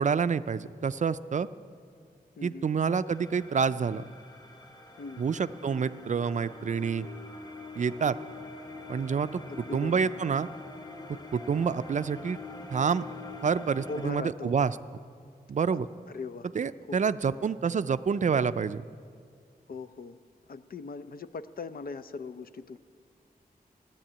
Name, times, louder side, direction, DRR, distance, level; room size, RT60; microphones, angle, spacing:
voice 1, 0.0-1.5 2.4-4.1 5.2-7.1 7.8-8.2 8.9-9.4 9.7-10.5 11.3-12.4 12.7-13.0 13.4-14.8 15.5-15.9 16.5-18.8, right 6 dB, 50° right, 14 dB, 0.4 m, -28 dB
voice 2, 2.4-2.7 5.0-5.2 9.5-10.0 13.9-14.5 15.7-15.8 16.1-16.5 16.9-17.0 17.3-17.4 19.7-20.2 20.5-22.8, left 4 dB, 70° left, 10 dB, 0.6 m, -39 dB
sound 1, 3.1-14.1, left 2 dB, 25° left, 1.2 m, -45 dB
15.0 x 11.0 x 8.7 m, 2.2 s
wide cardioid pair, 130°, 16 cm